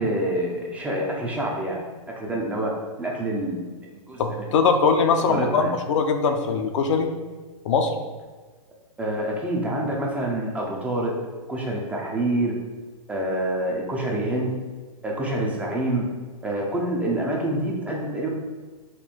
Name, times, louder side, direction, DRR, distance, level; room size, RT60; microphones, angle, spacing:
voice 1, 0.0-1.9 2.2-2.7 3.0-4.5 5.2-5.7 9.0-11.1 11.5-12.6 13.1-14.6 15.0-16.1 16.4-18.3, right 1 dB, 5° right, -2 dB, 0.5 m, -27 dB
voice 2, 4.2-7.1 7.6-7.9, left 5 dB, 55° left, 6 dB, 0.5 m, -21 dB
4.3 x 2.7 x 4.2 m, 1.3 s
hypercardioid pair, 150°, 19 cm